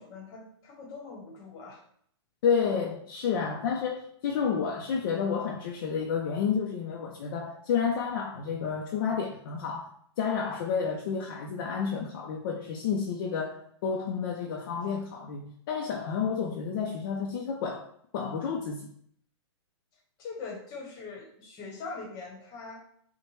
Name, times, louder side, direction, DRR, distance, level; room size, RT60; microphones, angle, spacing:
voice 1, 0.0-1.8 20.2-22.8, left 4 dB, 25° left, 1.1 m, -42 dB
voice 2, 2.4-9.9 10.2-17.9 18.1-18.9, left 6 dB, 45° left, 0.5 m, -30 dB
5.8 x 2.2 x 3.1 m
hypercardioid pair, 155°, 15 cm